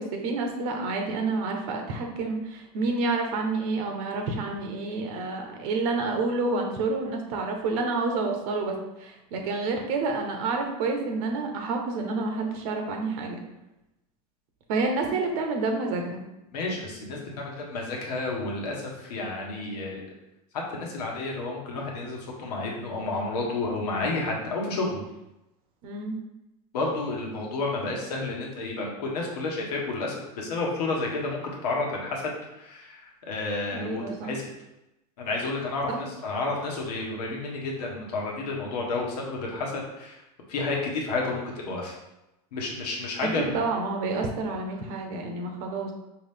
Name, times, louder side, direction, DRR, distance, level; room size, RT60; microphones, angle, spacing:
voice 1, 0.0-13.4 14.7-16.2 25.8-26.2 33.7-34.3 43.2-45.9, right 3 dB, 65° right, 3 dB, 1.0 m, -29 dB
voice 2, 16.5-20.0 20.5-25.0 26.7-34.4 35.2-40.1 40.5-41.9 42.5-43.6, left 3 dB, 85° left, -1 dB, 1.3 m, -31 dB
4.6 x 3.0 x 3.4 m, 0.92 s
supercardioid pair, 115°, 20 cm